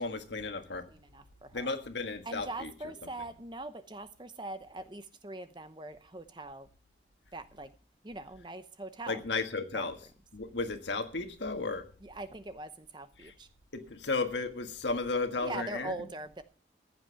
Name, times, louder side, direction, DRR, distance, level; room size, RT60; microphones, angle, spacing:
voice 1, 0.0-0.9 1.5-2.7 9.1-10.0 10.3-11.8 13.2-13.3 13.7-16.1, left 3 dB, 85° left, 1.6 m, -34 dB
voice 2, 0.9-1.7 2.2-6.7 7.3-7.7 8.0-9.2 9.7-9.9 12.0-13.5 15.4-16.4, right 2 dB, 25° right, 0.7 m, -42 dB
15.0 x 8.3 x 5.7 m
head